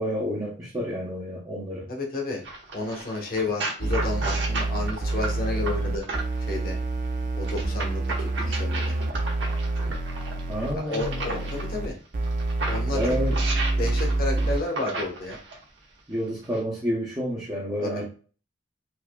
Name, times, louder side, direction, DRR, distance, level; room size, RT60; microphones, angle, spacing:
voice 1, 0.0-1.9 10.5-11.4 12.9-13.4 16.1-18.0, equal, 20° right, -4 dB, 0.8 m, -29 dB
voice 2, 1.9-2.4 2.7-6.1 6.4-6.8 7.4-9.0 10.7-12.0 12.7-13.1 13.8-15.4 17.8-18.0, left 3 dB, 50° left, 0 dB, 1.0 m, -31 dB
sound 1, 2.4-6.5 7.4-11.6 12.2-15.6 16.4-16.6, right 3 dB, 75° right, 1.1 m, -34 dB
sound 2, 3.8-10.7 11.0-11.9 12.1-14.6, right 2 dB, 45° right, 0.4 m, -27 dB
4.7 x 2.7 x 2.2 m, 0.37 s
head